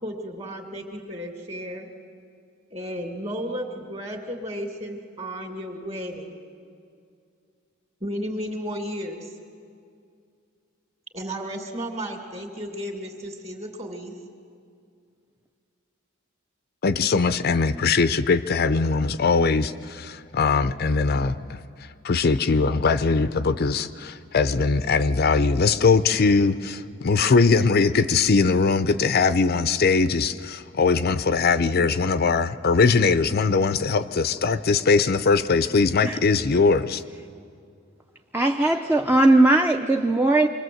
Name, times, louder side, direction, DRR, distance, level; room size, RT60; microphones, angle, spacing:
voice 1, 0.0-1.9 2.7-6.4 8.0-9.3 11.1-14.1, equal, 30° right, 3 dB, 2.5 m, -33 dB
voice 2, 16.8-19.7 20.0-21.4 22.0-37.0, left 4 dB, 50° left, 12 dB, 0.5 m, -21 dB
voice 3, 38.3-40.5, right 2 dB, 10° right, 4 dB, 0.5 m, -19 dB
25.5 x 20.0 x 7.8 m, 2.4 s
head